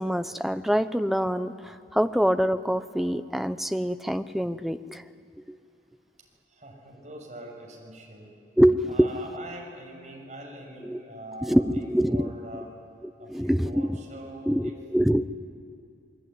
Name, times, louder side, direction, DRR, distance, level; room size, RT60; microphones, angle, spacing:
voice 1, 0.0-5.0 5.5-5.6 8.6-9.1 10.8-11.0 11.4-12.3 13.3-14.0 14.5-15.3, equal, ahead, 9 dB, 0.7 m, -25 dB
voice 2, 6.6-8.3 8.9-12.7 13.2-14.7, right 1 dB, 40° right, -1 dB, 7.0 m, -43 dB
27.5 x 21.5 x 9.8 m, 2.3 s
head